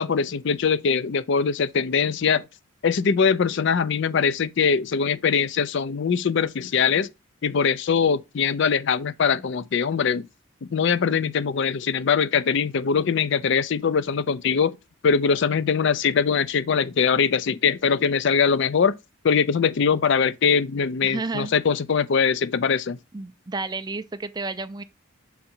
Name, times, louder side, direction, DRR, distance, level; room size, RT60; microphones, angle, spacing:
voice 1, 0.0-2.4 2.8-7.1 7.4-10.3 10.7-14.8 15.0-18.9 19.2-23.0, left 6 dB, 55° left, 0.4 m, -22 dB
voice 2, 21.0-21.5 23.1-24.8, right 3 dB, 20° right, 0.4 m, -31 dB
5.7 x 3.8 x 4.3 m
head